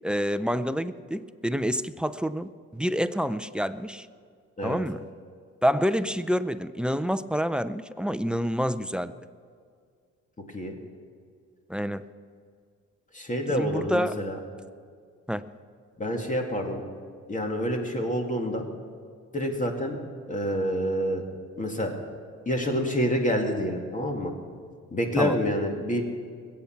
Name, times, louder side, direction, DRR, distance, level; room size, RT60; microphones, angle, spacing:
voice 1, 0.0-4.1 4.6-5.0 5.6-9.1 11.7-12.0 13.5-14.2 15.3-15.5 25.2-25.4, equal, 5° right, 14 dB, 0.5 m, -28 dB
voice 2, 13.1-14.4 16.0-16.8 17.3-18.6 19.3-20.0 20.3-21.2 21.6-21.9 22.5-24.3 24.9-26.0, equal, 25° left, 3 dB, 2.3 m, -27 dB
21.5 x 8.7 x 5.9 m, 2.1 s
cardioid pair, 90°, 30 cm